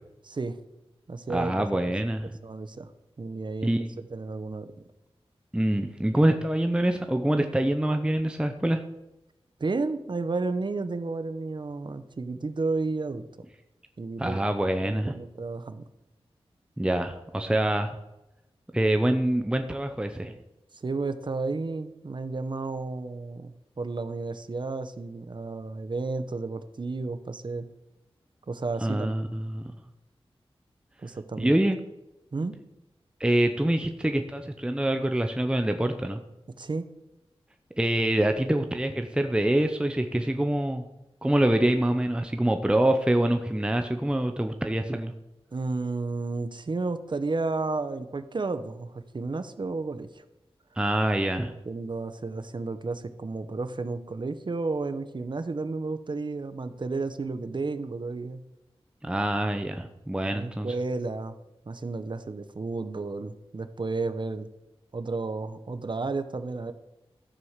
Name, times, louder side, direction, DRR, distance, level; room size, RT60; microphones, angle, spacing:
voice 1, 0.2-0.5 1.1-1.6 2.4-2.9 3.2-3.7 4.0-4.9 9.6-13.2 14.0-15.9 20.7-27.7 28.5-29.1 31.0-31.5 32.3-32.6 36.6-36.9 45.5-50.2 51.7-58.4 60.3-61.3 61.7-64.5 64.9-66.7, right 3 dB, 50° right, 10 dB, 0.8 m, -32 dB
voice 2, 1.3-2.3 3.6-3.8 5.5-8.8 14.2-15.2 16.8-18.0 18.7-20.4 28.8-29.7 31.4-31.8 33.2-36.2 37.8-40.8 41.2-45.1 50.8-51.5 59.0-60.7, right 1 dB, 10° right, 6 dB, 0.7 m, -25 dB
13.0 x 4.8 x 7.3 m, 0.96 s
wide cardioid pair, 65°, 10 cm